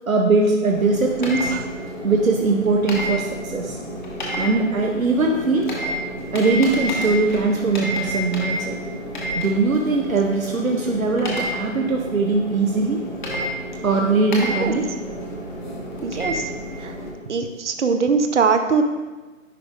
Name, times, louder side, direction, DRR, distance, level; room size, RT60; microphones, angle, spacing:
voice 1, 0.1-1.5 2.0-3.8 4.4-5.7 6.3-8.8 9.3-13.0 13.8-14.9, right 3 dB, 85° right, 1 dB, 0.9 m, -21 dB
sound 1, 0.6-17.1, equal, 35° left, 1.3 m, -30 dB
voice 2, 14.4-14.7 16.0-16.3 17.3-18.8, right 5 dB, 60° right, 7 dB, 0.7 m, -21 dB
10.0 x 4.7 x 2.5 m, 1.2 s
figure-of-eight pair, 150°, 40 cm